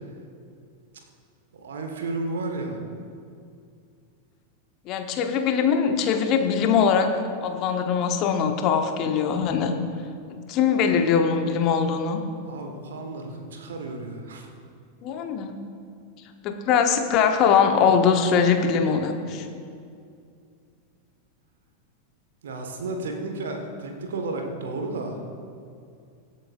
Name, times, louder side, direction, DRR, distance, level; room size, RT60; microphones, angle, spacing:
voice 1, 1.6-2.8 12.4-14.5 22.4-25.2, right 2 dB, 65° right, 4 dB, 1.6 m, -32 dB
voice 2, 4.9-7.1 7.4-9.7 10.5-12.2 15.0-15.6 16.4-19.5, left 6 dB, 40° left, 5 dB, 1.1 m, -22 dB
23.5 x 8.2 x 2.6 m, 2.4 s
figure-of-eight pair, 90°, 0 cm